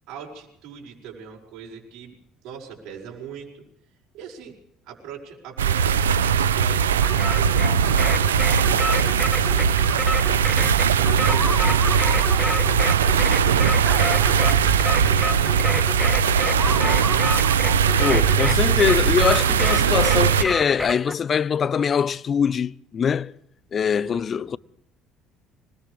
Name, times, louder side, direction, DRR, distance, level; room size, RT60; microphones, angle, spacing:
voice 1, 0.1-2.1 2.4-3.7 4.1-4.6 4.9-8.9 9.1-10.3 10.8-16.7 23.8-24.5, right 7 dB, 65° right, 6.4 m, -40 dB
sound 1, 5.6-20.4, right 7 dB, 85° right, 1.1 m, -20 dB
sound 2, 7.0-21.1, equal, ahead, 1.1 m, -29 dB
voice 2, 18.0-23.3 23.7-24.6, left 7 dB, 45° left, 0.7 m, -23 dB
25.5 x 21.5 x 5.0 m
hypercardioid pair, 55°, 0 cm